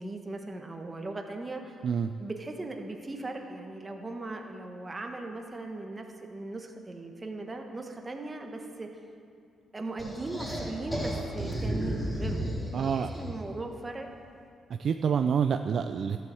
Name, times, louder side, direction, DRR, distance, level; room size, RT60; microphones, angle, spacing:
voice 1, 0.0-1.8 2.2-8.9 9.7-12.6 12.9-14.1, right 2 dB, 20° right, 3 dB, 1.3 m, -38 dB
sound 1, 10.0-13.5, equal, 10° left, 3.8 m, -33 dB
voice 2, 12.7-13.1 14.7-16.2, right 7 dB, 55° right, 8 dB, 0.4 m, -27 dB
14.0 x 7.8 x 7.7 m, 2.4 s
cardioid pair, 115°, 0 cm